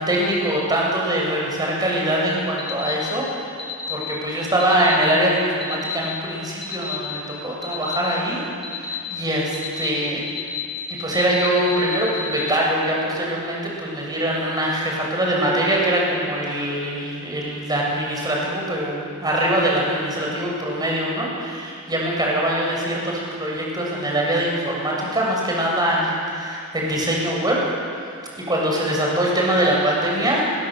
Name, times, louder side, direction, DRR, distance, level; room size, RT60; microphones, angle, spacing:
voice 1, 0.0-8.4 8.7-10.3 11.0-27.6 28.4-30.5, right 1 dB, 20° right, -3 dB, 7.9 m, -23 dB
sound 1, 2.6-2.9 3.6-3.9 4.6-4.9 5.6-5.9 6.6-6.9 7.6-7.9 8.6-8.9 9.5-9.8 10.3-10.6 10.9-12.3, left 3 dB, 20° left, 4.5 m, -32 dB
30.0 x 23.0 x 8.1 m, 2.4 s
head